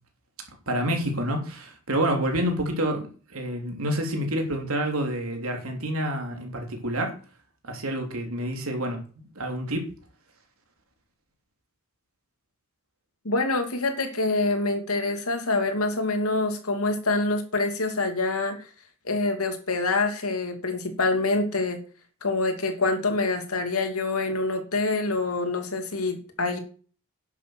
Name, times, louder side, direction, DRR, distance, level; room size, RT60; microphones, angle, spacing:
voice 1, 0.7-7.1 7.6-9.9, right 1 dB, 75° right, 3 dB, 3.4 m, -28 dB
voice 2, 13.2-18.6 19.0-21.8 22.2-26.6, left 3 dB, 90° left, 5 dB, 2.7 m, -26 dB
11.0 x 7.8 x 6.4 m, 0.39 s
head